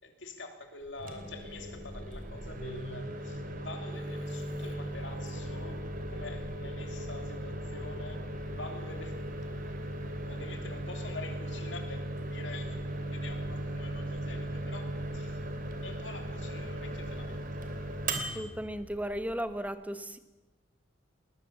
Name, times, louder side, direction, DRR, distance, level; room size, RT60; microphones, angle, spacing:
voice 1, 0.0-8.2 8.5-9.2 10.1-15.4 15.8-17.4, left 3 dB, 75° left, 5 dB, 3.4 m, -46 dB
Microwave oven, 0.9-19.7, right 1 dB, 45° right, 2.7 m, -38 dB
voice 2, 18.1-20.2, equal, 10° right, 11 dB, 1.2 m, -36 dB
20.5 x 20.5 x 7.4 m, 1.1 s
head